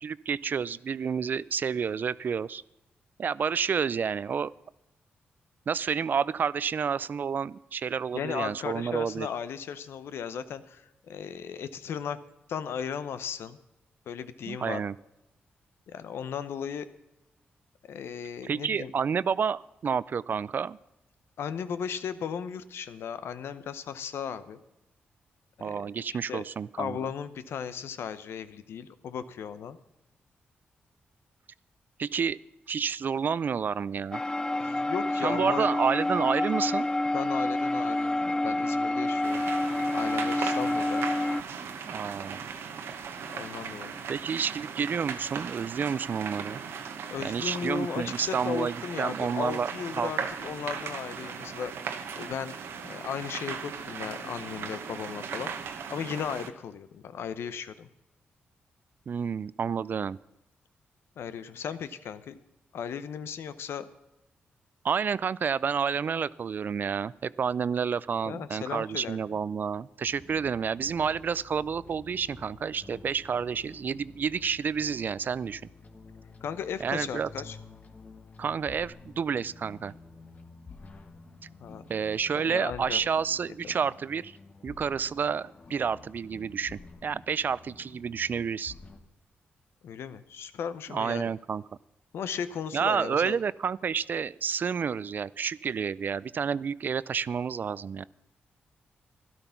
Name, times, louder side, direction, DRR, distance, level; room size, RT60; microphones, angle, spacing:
voice 1, 0.0-2.6 3.2-4.5 5.7-9.3 14.5-14.9 18.4-20.8 25.6-27.0 32.0-32.4 32.7-34.2 35.2-36.9 41.9-42.4 44.1-46.6 47.2-49.7 50.0-50.1 59.1-60.2 64.8-75.6 76.8-77.3 78.4-79.9 81.9-84.4 84.6-88.7 90.9-91.6 92.7-98.1, right 6 dB, 50° right, 20 dB, 0.4 m, -30 dB
voice 2, 8.1-12.2 12.5-13.6 14.1-14.8 15.9-16.9 17.9-18.9 21.4-24.6 25.6-25.8 26.1-26.4 26.8-29.8 34.6-35.7 37.1-39.4 39.9-41.1 43.3-43.9 47.1-57.9 61.2-62.4 62.7-63.8 68.2-69.2 76.4-77.6 81.6-81.8 82.3-83.0 89.8-91.3 92.1-93.4, left 7 dB, 80° left, 13 dB, 0.8 m, -36 dB
sound 1, 34.1-41.4, left 2 dB, 20° left, 0.5 m, -28 dB
sound 2, 39.2-56.5, right 6 dB, 85° right, 1.1 m, -38 dB
sound 3, 70.1-89.0, left 4 dB, 40° left, 1.4 m, -50 dB
12.5 x 12.0 x 5.8 m, 0.93 s
cardioid pair, 80°, 4 cm